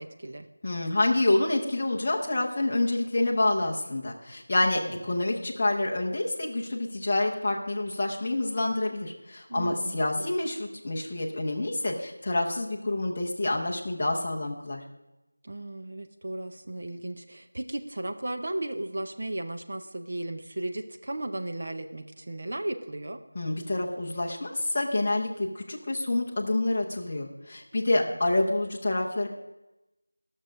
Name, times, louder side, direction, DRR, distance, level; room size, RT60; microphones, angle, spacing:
voice 1, 0.0-0.5 4.6-5.2 9.5-10.3 15.4-23.2 27.9-28.1, right 1 dB, 25° right, 5 dB, 0.6 m, -35 dB
voice 2, 0.6-14.8 23.3-29.3, left 2 dB, 15° left, -3 dB, 0.7 m, -27 dB
13.5 x 6.4 x 6.3 m, 0.99 s
figure-of-eight pair, 180°, 0 cm